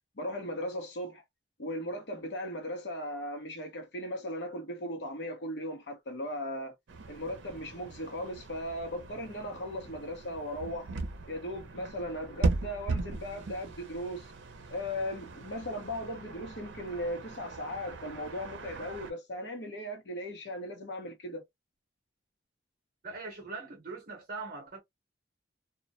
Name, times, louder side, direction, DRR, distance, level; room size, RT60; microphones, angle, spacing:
voice 1, 0.2-1.2 1.6-6.7 7.1-10.9 11.3-14.3 14.7-21.4, equal, 70° left, 0.9 m, -37 dB
sound 1, 6.9-19.1, right 3 dB, 90° right, 0.6 m, -38 dB
voice 2, 23.0-24.8, right 3 dB, 50° right, 0.7 m, -41 dB
2.3 x 2.0 x 2.6 m
head